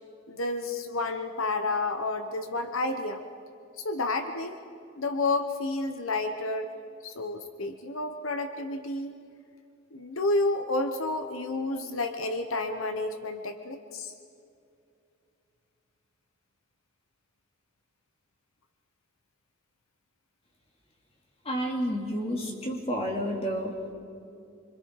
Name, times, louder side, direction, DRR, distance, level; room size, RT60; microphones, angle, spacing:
voice 1, 0.3-3.2 3.8-4.6 5.0-6.7 7.0-9.1 9.9-14.1, left 2 dB, 85° left, 7 dB, 1.1 m, -30 dB
voice 2, 21.4-23.7, equal, 30° left, 0 dB, 3.0 m, -30 dB
26.0 x 25.0 x 4.8 m, 2.5 s
head